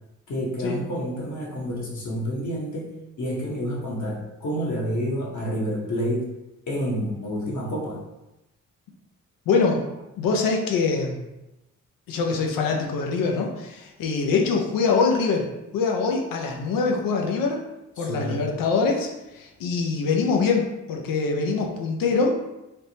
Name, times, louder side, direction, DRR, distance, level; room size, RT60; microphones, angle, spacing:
voice 1, 0.3-2.9 3.2-6.2 6.7-8.0 18.0-18.5, equal, 60° left, -3 dB, 1.0 m, -29 dB
voice 2, 9.5-9.8 10.2-11.2 12.1-15.5 15.7-17.6 18.0-22.3, left 4 dB, 85° left, 2 dB, 0.5 m, -24 dB
3.3 x 2.0 x 2.7 m, 0.95 s
supercardioid pair, 50°, 33 cm